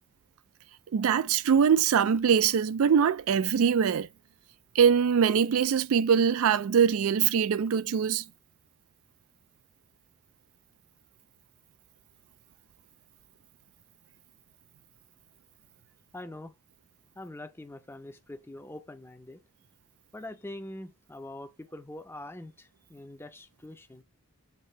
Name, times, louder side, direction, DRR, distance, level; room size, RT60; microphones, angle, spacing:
voice 1, 0.9-4.1 4.8-8.2, right 7 dB, 70° right, 0.3 m, -23 dB
voice 2, 16.1-16.5 17.2-19.4 20.1-24.0, left 1 dB, 10° left, 0.5 m, -43 dB
8.1 x 2.8 x 4.4 m
head